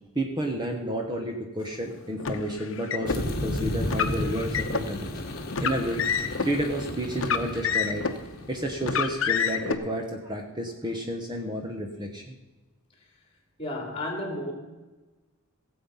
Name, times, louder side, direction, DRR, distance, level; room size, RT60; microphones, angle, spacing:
voice 1, 0.1-5.2 5.6-6.1 6.3-8.0 8.5-12.4, right 1 dB, 20° right, 2 dB, 1.0 m, -31 dB
Car, 2.2-3.2 3.8-4.9 5.5-6.5 7.1-8.2 8.8-9.7, left 6 dB, 60° left, 0.9 m, -28 dB
sound 1, 3.1-9.7, left 1 dB, 45° left, 1.5 m, -34 dB
voice 2, 13.6-14.5, left 1 dB, 25° left, 2 dB, 2.8 m, -32 dB
17.0 x 7.9 x 5.7 m, 1.2 s
head